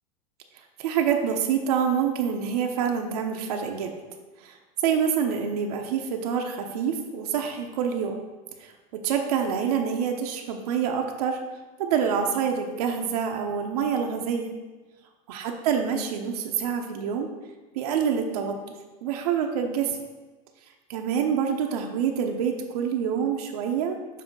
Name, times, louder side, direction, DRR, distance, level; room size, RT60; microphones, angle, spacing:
voice 1, 0.8-3.9 4.4-4.5 4.8-8.2 8.6-11.4 11.8-14.5 15.3-17.3 17.7-18.6 19.0-19.9 20.9-24.0, right 7 dB, 80° right, 3 dB, 0.8 m, -26 dB
7.4 x 2.8 x 5.4 m, 1.2 s
supercardioid pair, 135°, 19 cm